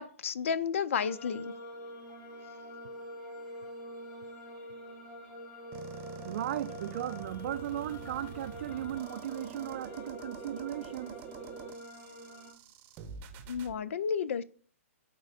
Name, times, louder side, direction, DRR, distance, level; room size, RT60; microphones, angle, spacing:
voice 1, 0.0-1.5 13.5-14.4, left 6 dB, 60° left, 0.5 m, -32 dB
sound 1, 0.9-12.5, equal, 40° left, 1.9 m, -46 dB
sound 2, 5.7-13.7, right 7 dB, 25° right, 0.8 m, -46 dB
voice 2, 6.3-11.2, right 11 dB, 55° right, 0.4 m, -36 dB
10.5 x 3.7 x 2.5 m
hypercardioid pair, 130°, 8 cm